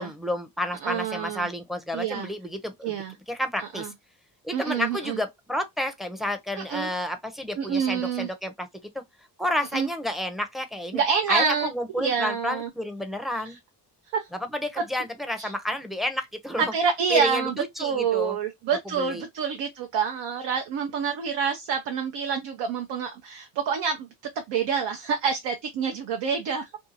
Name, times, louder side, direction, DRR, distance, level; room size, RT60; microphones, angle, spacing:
voice 1, 0.0-3.0 3.3-3.9 4.4-8.7 8.9-9.0 9.4-11.0 11.3-13.6 14.4-16.7 17.1-18.4 19.0-19.2, left 1 dB, ahead, 0.5 m, -30 dB
voice 2, 0.8-1.5 1.9-2.3 2.8-3.1 3.7-3.9 4.5-5.2 6.6-6.9 7.5-8.3 9.7-9.9 10.9-11.7 12.0-12.7 13.4-13.5 14.1-14.3 15.4-15.5 16.7-26.7, right 6 dB, 75° right, 0.7 m, -27 dB
2.7 x 2.3 x 2.6 m
cardioid pair, 90°, 42 cm